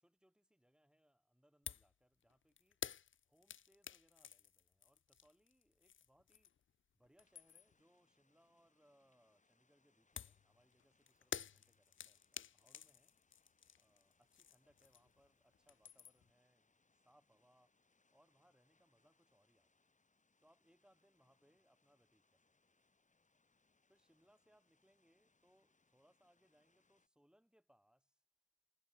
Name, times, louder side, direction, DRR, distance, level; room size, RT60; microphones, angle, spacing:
voice 1, 0.0-2.8 3.3-6.5 6.9-13.1 13.8-16.7 17.0-17.7 18.1-19.7 20.4-22.4 23.9-28.1, equal, 5° right, 6.7 m, -74 dB
sound 1, 1.7-1.9 2.2-6.7 7.0-7.8 10.2-15.3 15.5-16.3, left 8 dB, 75° left, 0.8 m, -51 dB
sound 2, 7.2-27.1, left 3 dB, 40° left, 4.1 m, -80 dB
cardioid pair, 75°, 20 cm